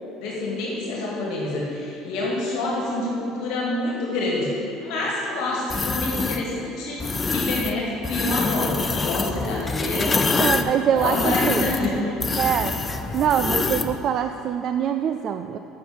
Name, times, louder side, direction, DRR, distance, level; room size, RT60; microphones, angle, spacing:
voice 1, 0.2-4.5 4.8-10.1 10.9-12.2, left 2 dB, 70° left, -3 dB, 1.8 m, -27 dB
sound 1, 5.7-6.4 7.0-7.7 8.0-14.0, left 4 dB, 25° left, 0.6 m, -25 dB
voice 2, 10.4-11.7 12.4-12.7 13.1-15.6, right 8 dB, 55° right, 8 dB, 0.3 m, -24 dB
7.0 x 6.4 x 7.9 m, 2.9 s
hypercardioid pair, 75°, 0 cm